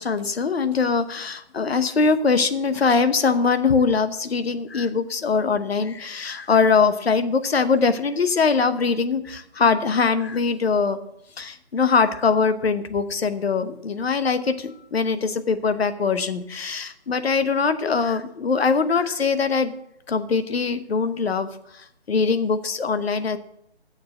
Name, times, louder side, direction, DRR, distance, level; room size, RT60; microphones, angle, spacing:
voice 1, 0.0-11.0 11.4-19.7 20.1-23.4, left 5 dB, 70° left, 11 dB, 1.0 m, -22 dB
7.4 x 7.2 x 7.8 m, 0.77 s
figure-of-eight pair, 160°, 32 cm